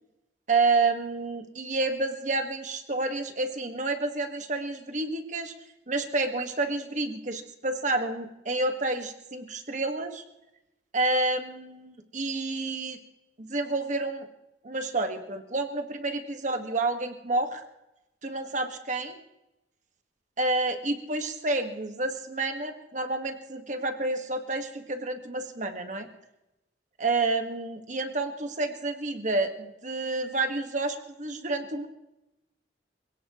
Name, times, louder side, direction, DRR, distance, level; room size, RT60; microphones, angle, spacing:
voice 1, 0.5-5.5 5.9-10.2 10.9-13.0 13.4-14.3 14.6-17.6 18.2-19.2 20.4-26.1 27.0-31.9, right 2 dB, 40° right, 6 dB, 1.6 m, -29 dB
27.0 x 17.5 x 3.0 m, 0.94 s
head